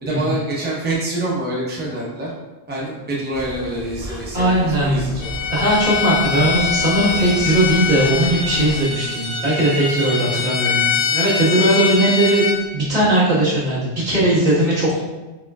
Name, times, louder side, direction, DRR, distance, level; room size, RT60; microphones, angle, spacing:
voice 1, 0.0-2.3 2.7-5.3, right 2 dB, 10° right, -5 dB, 0.8 m, -26 dB
sound 1, 3.3-8.8, equal, 30° left, 1.3 m, -34 dB
voice 2, 4.3-5.0 5.5-12.4 12.7-15.0, right 1 dB, 85° right, -10 dB, 2.0 m, -18 dB
Bowed string instrument, 5.2-12.6, left 6 dB, 85° left, 1.1 m, -23 dB
4.8 x 3.7 x 2.4 m, 1.2 s
omnidirectional pair, 1.1 m